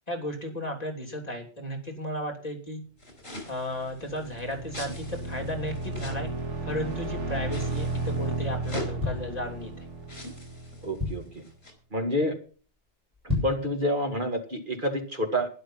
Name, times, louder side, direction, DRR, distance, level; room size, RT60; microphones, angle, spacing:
voice 1, 0.1-2.8 3.4-6.3 6.6-9.9, left 1 dB, 35° left, 1 dB, 3.3 m, -34 dB
sound 1, 3.0-7.1 7.5-9.0 9.7-9.8 10.0-11.7, left 1 dB, 60° left, 4.9 m, -43 dB
sound 2, 3.7-11.3, right 2 dB, 85° right, 2.1 m, -34 dB
sound 3, 9.0-10.0 10.5-10.6 10.7-11.5 11.9-12.2 12.5-12.6 13.1-13.7 14.2-14.3, left 3 dB, 5° right, 6.9 m, -31 dB
voice 2, 10.8-11.4 11.9-12.4 13.4-15.5, equal, 45° right, 4 dB, 2.1 m, -28 dB
12.0 x 11.0 x 5.7 m, 0.39 s
omnidirectional pair, 1.2 m